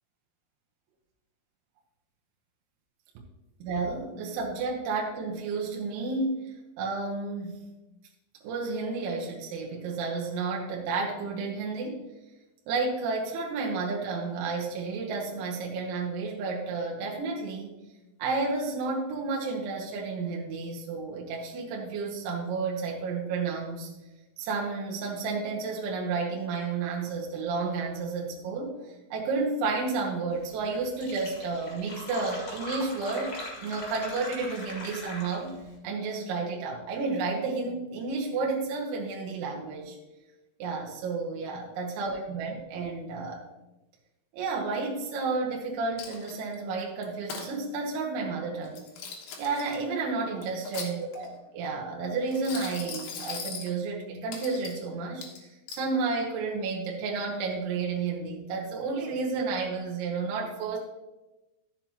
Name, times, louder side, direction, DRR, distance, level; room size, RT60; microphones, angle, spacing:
voice 1, 3.6-7.6 8.4-12.0 12.7-17.8 18.2-23.9 24.4-33.3 33.6-35.6 35.8-40.0 40.6-43.5 44.3-48.8 49.4-51.3 51.5-60.8, right 4 dB, 75° right, -1 dB, 3.3 m, -31 dB
Fill (with liquid), 30.5-30.6 30.8-35.6, left 1 dB, 45° left, 2.3 m, -40 dB
Coin (dropping), 46.0-46.5 47.0-47.5 48.6-49.8 50.4-51.3 52.3-53.7 54.3-54.8 55.2-55.9, left 5 dB, 70° left, 2.2 m, -39 dB
13.0 x 7.1 x 2.9 m, 1.0 s
omnidirectional pair, 5.7 m